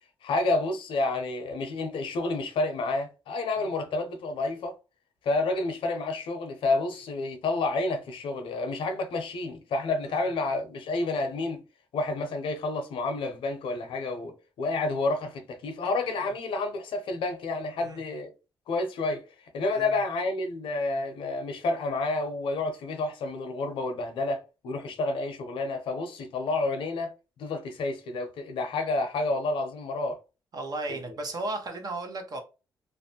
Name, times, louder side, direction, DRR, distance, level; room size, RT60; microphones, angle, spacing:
voice 1, 0.2-4.7 5.2-11.6 11.9-18.3 18.7-19.2 19.5-27.1 27.4-30.2 30.9-31.1, left 3 dB, 75° left, 0.6 m, -29 dB
voice 2, 30.5-32.4, right 2 dB, 50° right, 0.8 m, -35 dB
2.5 x 2.1 x 2.8 m
supercardioid pair, 65°, 9 cm